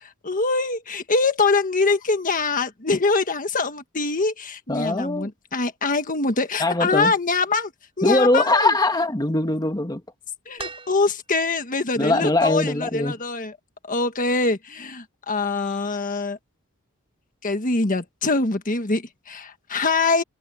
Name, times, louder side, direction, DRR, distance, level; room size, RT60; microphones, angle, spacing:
voice 1, 0.0-7.7 8.0-8.7 10.5-13.6 13.9-16.4 17.4-20.2, left 3 dB, 40° left, 1.5 m, -24 dB
voice 2, 4.7-5.3 6.6-7.1 8.0-10.0 12.0-13.2, left 2 dB, 20° left, 1.5 m, -21 dB
sound 1, 10.6-11.6 13.1-13.2, right 4 dB, 25° right, 6.9 m, -39 dB
head